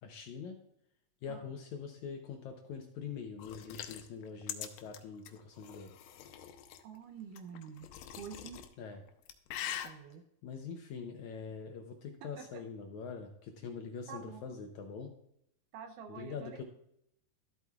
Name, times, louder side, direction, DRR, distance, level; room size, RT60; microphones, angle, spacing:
voice 1, 0.0-0.6 1.2-6.0 8.8-9.0 10.4-15.2 16.1-16.6, left 6 dB, 70° left, 4 dB, 1.9 m, -44 dB
sound 1, 3.4-6.8 7.4-8.7 9.1-9.9, left 11 dB, 90° left, 2.6 m, -43 dB
voice 2, 6.8-8.6 9.8-10.2 12.2-12.4 14.1-14.5 15.7-16.6, right 7 dB, 75° right, 5 dB, 2.2 m, -48 dB
13.5 x 8.3 x 2.4 m, 0.75 s
omnidirectional pair, 4.1 m